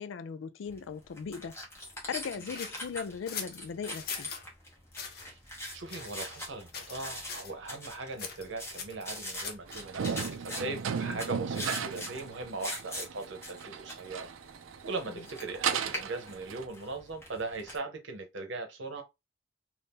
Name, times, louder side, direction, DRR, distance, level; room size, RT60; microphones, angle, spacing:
voice 1, 0.0-1.6 2.1-4.3 11.0-11.3 15.1-15.3, left 6 dB, 75° left, 0.4 m, -38 dB
sound 1, 0.7-17.8, left 1 dB, 15° left, 0.9 m, -43 dB
sound 2, 2.5-4.4 4.9-5.3 5.9-6.5 6.7-7.0 7.3-7.5 8.2-9.8, left 6 dB, 50° left, 0.7 m, -41 dB
voice 2, 5.7-14.3 14.8-19.0, right 3 dB, 70° right, 0.9 m, -39 dB
sound 3, 9.7-16.6, right 7 dB, 90° right, 0.4 m, -36 dB
2.7 x 2.6 x 3.5 m
head